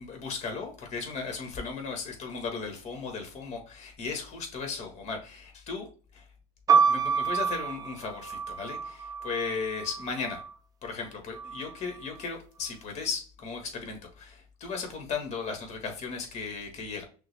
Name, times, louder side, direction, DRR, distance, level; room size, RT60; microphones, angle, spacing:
voice 1, 0.0-5.9 6.1-6.2 6.8-10.4 10.8-17.0, left 5 dB, 40° left, 3 dB, 1.4 m, -36 dB
sound 1, 6.7-10.5 11.3-12.1, right 6 dB, 20° right, 0.7 m, -28 dB
5.8 x 2.1 x 3.2 m, 0.37 s
supercardioid pair, 130°, 18 cm